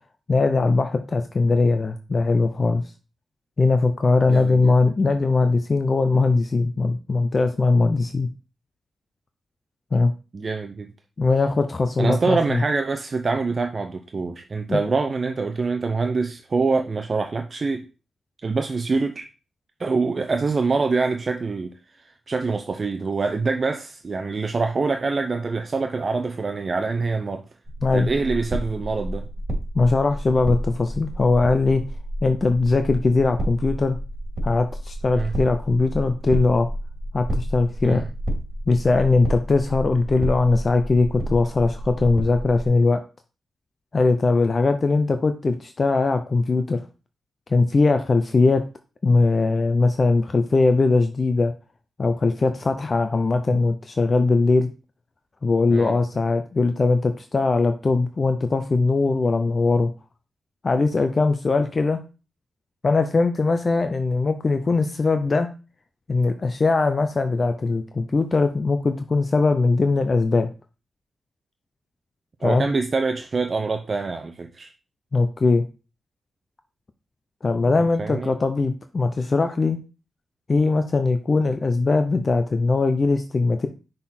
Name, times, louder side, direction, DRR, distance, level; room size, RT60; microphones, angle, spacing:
voice 1, 0.3-2.8 3.6-8.3 9.9-10.1 11.2-12.6 14.7-14.8 27.8-28.1 29.7-31.8 32.2-34.0 34.4-36.7 37.1-38.0 38.7-43.0 43.9-46.8 47.5-48.6 49.0-51.5 52.0-54.7 55.4-59.9 60.6-62.0 62.8-65.5 66.1-70.5 72.4-72.7 75.1-75.6 77.4-79.8 80.5-83.7, left 3 dB, 40° left, 0.6 m, -20 dB
voice 2, 4.3-4.7 10.3-10.9 12.0-17.8 18.4-19.3 19.8-27.5 27.9-29.3 35.1-35.4 37.8-38.1 55.7-56.0 72.4-74.7 77.8-78.3, right 4 dB, 45° right, 0.6 m, -25 dB
sound 1, 27.7-42.7, right 1 dB, 25° right, 2.8 m, -31 dB
6.0 x 3.8 x 4.3 m
cardioid pair, 60°, 0 cm